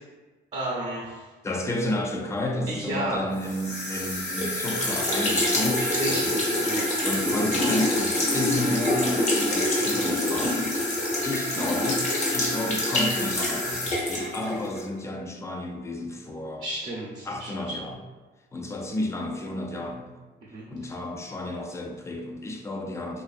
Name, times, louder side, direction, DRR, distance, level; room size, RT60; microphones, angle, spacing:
voice 1, 0.5-1.3 2.7-3.2 5.8-6.9 16.6-17.7 20.4-20.7, right 1 dB, 35° right, -5 dB, 0.6 m, -32 dB
voice 2, 1.4-6.3 7.0-10.8 11.2-16.7 17.3-18.0 18.5-20.2 20.7-23.2, left 1 dB, 15° left, 2 dB, 0.3 m, -32 dB
sound 1, 3.4-14.8, left 1 dB, 35° left, 0.8 m, -26 dB
2.5 x 2.5 x 2.4 m, 1.3 s
cardioid pair, 90°, 20 cm